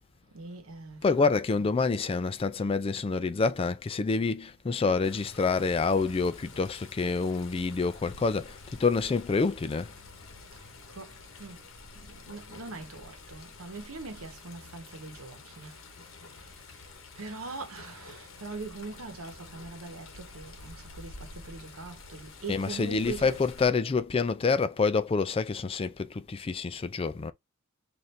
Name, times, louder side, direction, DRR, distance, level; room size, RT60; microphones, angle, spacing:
voice 1, 0.3-1.8 10.9-11.6 11.9-15.8 17.2-23.4, right 3 dB, 85° right, 1.0 m, -42 dB
voice 2, 1.0-9.9 22.5-27.3, left 4 dB, 25° left, 0.3 m, -27 dB
Water, 5.0-23.7, left 3 dB, 65° left, 0.9 m, -48 dB
4.1 x 2.6 x 3.2 m
head